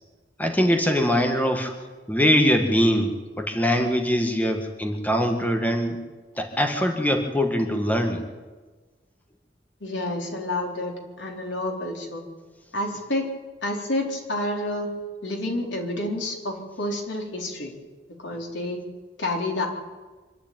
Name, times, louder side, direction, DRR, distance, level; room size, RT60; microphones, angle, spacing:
voice 1, 0.4-1.7 2.1-6.0 6.4-8.2, equal, 10° left, 4 dB, 1.7 m, -22 dB
voice 2, 9.8-10.9 11.2-12.2 12.7-13.3 13.6-14.9 15.2-17.7 18.2-18.8 19.2-19.7, left 1 dB, 85° left, 1 dB, 4.0 m, -29 dB
25.0 x 11.5 x 9.1 m, 1.3 s
head